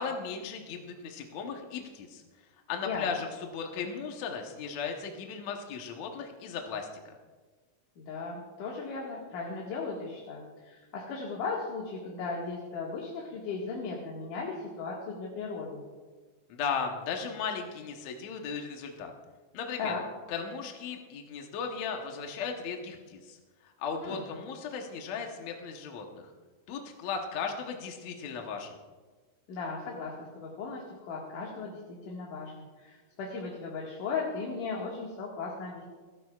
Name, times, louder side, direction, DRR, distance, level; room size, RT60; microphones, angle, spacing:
voice 1, 0.0-2.2 2.7-7.2 16.5-19.1 19.5-19.9 20.3-23.4 23.6-26.2 26.7-28.7, left 6 dB, 70° left, 2 dB, 2.3 m, -36 dB
voice 2, 8.0-15.8 19.8-20.0 24.0-24.2 29.5-35.8, left 4 dB, 85° left, -3 dB, 3.3 m, -37 dB
28.5 x 11.0 x 2.4 m, 1.4 s
omnidirectional pair, 3.5 m